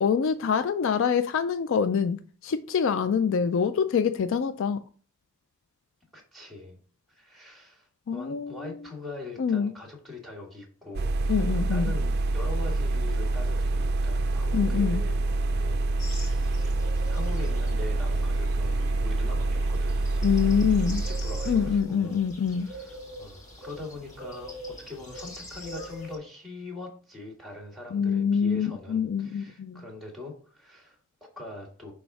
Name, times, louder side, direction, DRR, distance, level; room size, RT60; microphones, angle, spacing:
voice 1, 0.0-4.8 8.1-8.5 9.4-9.7 11.3-11.9 14.5-15.0 20.2-21.0 21.5-22.7 27.9-29.8, left 6 dB, 55° left, 0.3 m, -25 dB
voice 2, 6.1-6.8 7.1-16.4 17.1-22.2 22.5-31.9, left 2 dB, ahead, 1.6 m, -42 dB
sound 1, 10.9-21.8, right 2 dB, 45° right, 0.4 m, -26 dB
sound 2, 16.0-26.2, equal, 35° left, 2.0 m, -44 dB
6.2 x 3.4 x 4.7 m
head